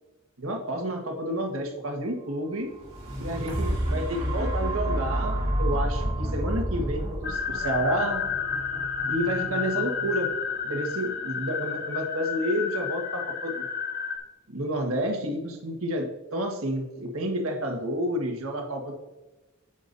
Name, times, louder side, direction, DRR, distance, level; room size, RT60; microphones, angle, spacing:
voice 1, 0.4-2.7 3.2-8.3 9.1-10.3 10.6-13.6 14.5-18.9, right 1 dB, 80° right, 2 dB, 1.6 m, -30 dB
sound 1, 2.7-10.7 11.3-11.4, right 1 dB, 30° right, 2.4 m, -30 dB
sound 2, 7.2-14.2, left 7 dB, 45° left, 1.1 m, -31 dB
9.5 x 7.2 x 2.7 m, 1.1 s
head